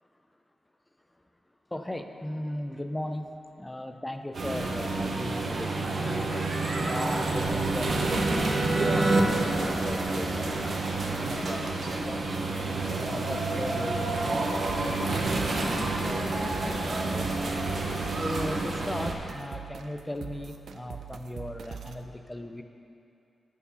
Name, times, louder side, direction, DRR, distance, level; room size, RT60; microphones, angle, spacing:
voice 1, 1.7-6.3 6.8-12.4 12.9-14.5 14.8-17.5 18.2-22.6, left 1 dB, 10° left, 6 dB, 0.4 m, -37 dB
sound 1, 4.3-19.1, right 2 dB, 50° right, 0.9 m, -30 dB
sound 2, 5.2-10.9, right 2 dB, 30° right, 0.6 m, -30 dB
sound 3, 14.7-22.1, right 7 dB, 75° right, 0.5 m, -43 dB
14.0 x 4.7 x 5.6 m, 2.7 s
wide cardioid pair, 165°, 0 cm